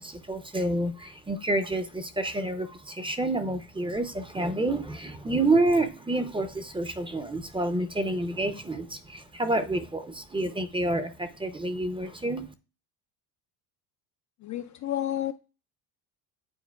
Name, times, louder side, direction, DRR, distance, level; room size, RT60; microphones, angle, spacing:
voice 1, 0.0-12.5, right 2 dB, 10° right, 0.6 m, -28 dB
voice 2, 14.4-15.3, left 12 dB, 40° left, 0.4 m, -30 dB
9.7 x 4.2 x 2.3 m
supercardioid pair, 85°, 48 cm